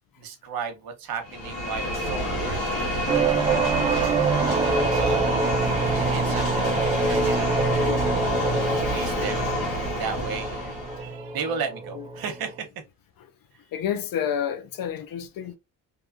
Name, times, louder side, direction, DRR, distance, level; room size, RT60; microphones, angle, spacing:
voice 1, 0.2-2.6 4.9-5.3 5.6-7.9 8.4-9.4 9.9-12.7, right 6 dB, 70° right, 0.9 m, -35 dB
sound 1, 1.2-11.1, left 1 dB, 75° left, 1.3 m, -28 dB
sound 2, 3.1-12.6, right 4 dB, 15° right, 0.3 m, -26 dB
voice 2, 13.7-15.6, left 9 dB, 60° left, 0.6 m, -31 dB
2.7 x 2.4 x 2.4 m
cardioid pair, 80°, 38 cm